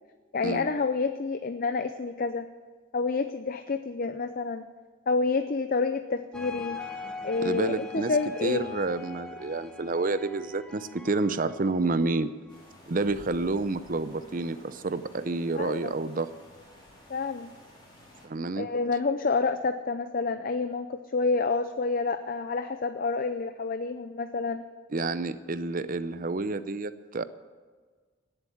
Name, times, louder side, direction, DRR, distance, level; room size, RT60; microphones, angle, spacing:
voice 1, 0.3-2.5 2.9-4.6 5.1-6.8 7.2-8.7 15.6-15.9 17.1-17.5 18.6-24.6, left 4 dB, 45° left, 9 dB, 0.5 m, -28 dB
sound 1, 6.3-12.8, left 5 dB, 5° left, 1.0 m, -42 dB
voice 2, 7.4-8.1 8.4-12.3 12.9-16.3 18.2-18.7 24.9-27.2, right 3 dB, 40° right, 13 dB, 0.6 m, -29 dB
sound 2, 12.5-18.3, left 1 dB, 25° left, 4.4 m, -53 dB
18.0 x 8.1 x 7.3 m, 1.5 s
head